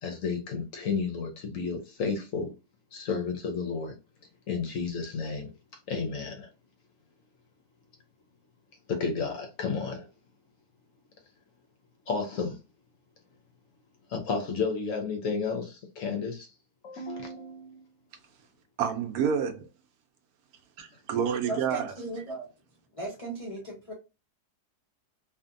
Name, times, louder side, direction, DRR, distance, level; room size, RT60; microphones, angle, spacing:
voice 1, 0.0-2.5 2.9-3.9 4.5-5.5 5.9-6.5 8.9-10.1 12.1-12.6 14.1-16.5 16.8-17.8, left 5 dB, 65° left, 0.9 m, -32 dB
voice 2, 18.8-19.7 20.8-21.9, right 7 dB, 75° right, 1.0 m, -28 dB
voice 3, 21.4-22.4 23.0-23.9, right 1 dB, 45° left, 0.4 m, -36 dB
2.7 x 2.5 x 2.5 m
omnidirectional pair, 1.7 m